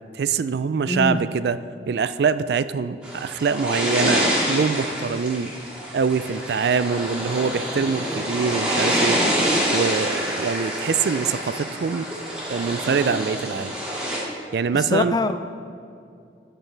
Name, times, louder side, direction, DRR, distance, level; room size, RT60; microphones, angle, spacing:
voice 1, 0.1-1.6 1.9-5.5 5.9-9.2 9.7-12.1 12.5-13.7 14.5-15.2, right 5 dB, 70° right, 14 dB, 0.3 m, -24 dB
sound 1, 3.0-14.2, equal, 5° right, 2.0 m, -26 dB
voice 2, 14.9-15.5, left 2 dB, 20° left, 10 dB, 0.3 m, -23 dB
14.0 x 6.7 x 3.3 m, 2.4 s
head